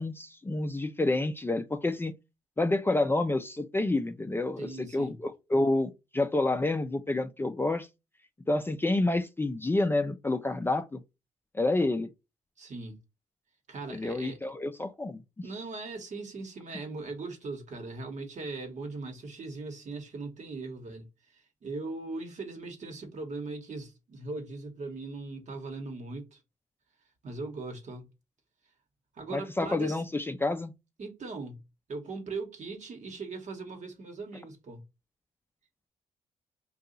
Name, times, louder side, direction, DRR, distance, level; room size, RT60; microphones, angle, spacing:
voice 1, 0.0-2.1 2.6-7.9 8.5-11.0 11.5-12.1 13.9-15.2 29.3-30.7, left 2 dB, 15° left, 0.4 m, -28 dB
voice 2, 4.6-5.2 12.6-13.0 13.7-14.5 15.4-26.4 27.2-28.1 29.1-30.0 31.0-31.6 31.9-34.8, right 3 dB, 55° right, 1.2 m, -39 dB
2.7 x 2.3 x 3.8 m
supercardioid pair, 65°, 14 cm